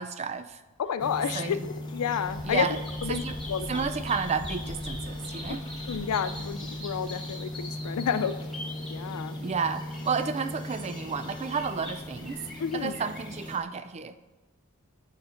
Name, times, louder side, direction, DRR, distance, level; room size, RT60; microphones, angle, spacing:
voice 1, 0.0-0.6 1.3-1.7 2.4-2.8 3.1-3.4 3.7-5.6 9.4-12.4 12.7-14.2, right 5 dB, 30° right, 10 dB, 0.4 m, -31 dB
voice 2, 0.8-2.7 3.0-3.2 3.5-3.9 5.9-8.4 8.9-9.4 12.6-12.9, left 7 dB, 85° left, 13 dB, 0.4 m, -30 dB
sound 1, 1.0-13.6, left 1 dB, 20° left, 0.7 m, -38 dB
Bird vocalization bird call bird song, 2.2-13.6, left 1 dB, ahead, 1.8 m, -43 dB
6.5 x 4.9 x 5.7 m, 1.1 s
head